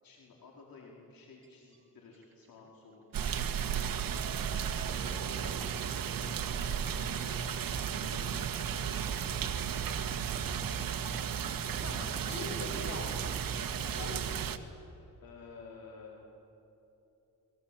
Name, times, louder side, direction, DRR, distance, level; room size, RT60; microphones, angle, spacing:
voice 1, 0.0-4.3 5.3-10.5 13.8-14.0 15.2-16.3, left 4 dB, 75° left, -1 dB, 4.7 m, -54 dB
sound 1, 1.4-1.8 2.1-2.5 2.9-3.0 3.8-12.9, right 4 dB, 35° right, 2.7 m, -52 dB
sound 2, 3.1-14.6, right 8 dB, 70° right, 1.7 m, -34 dB
voice 2, 5.0-5.4 11.8-13.3 13.9-14.1, left 2 dB, 50° left, 2 dB, 7.0 m, -43 dB
Drum kit, 8.4-13.9, right 3 dB, 15° right, 1.1 m, -48 dB
28.0 x 23.0 x 8.7 m, 3.0 s
cardioid pair, 95°, 35 cm